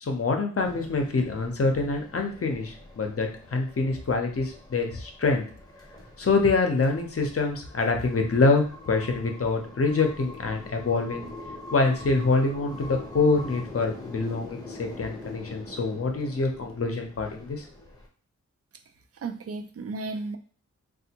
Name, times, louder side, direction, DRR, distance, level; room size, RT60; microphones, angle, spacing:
voice 1, 0.0-5.4 6.2-11.3 11.7-17.7, left 3 dB, 50° left, 3 dB, 0.7 m, -25 dB
sound 1, 0.6-18.1, left 2 dB, 15° left, 0.8 m, -44 dB
voice 2, 19.1-20.4, right 3 dB, 50° right, 7 dB, 0.5 m, -34 dB
3.3 x 2.4 x 2.8 m, 0.42 s
wide cardioid pair, 75°, 30 cm